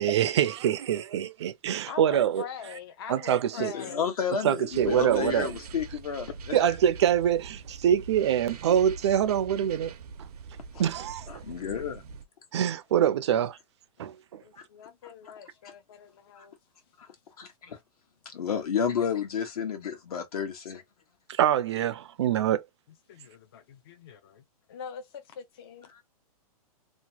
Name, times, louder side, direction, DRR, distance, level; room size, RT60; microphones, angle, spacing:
voice 1, 0.0-2.5 3.1-3.7 4.4-5.6 6.5-9.9 10.2-10.3 10.8-11.4 12.5-13.6 14.0-14.4 21.3-22.7, right 10 dB, 45° right, 0.4 m, -25 dB
voice 2, 1.9-4.1 14.4-16.6 23.1-24.4 24.7-25.9, left 7 dB, 40° left, 0.4 m, -43 dB
voice 3, 3.7-6.6 11.3-12.0 15.0-15.3 15.6-15.7 16.4-16.5 17.0-17.1 17.4-17.8 18.3-20.8 25.9-26.0, left 7 dB, 75° left, 1.3 m, -31 dB
sound 1, 4.7-12.2, right 4 dB, 90° right, 0.6 m, -43 dB
2.9 x 2.1 x 2.8 m
hypercardioid pair, 170°, 19 cm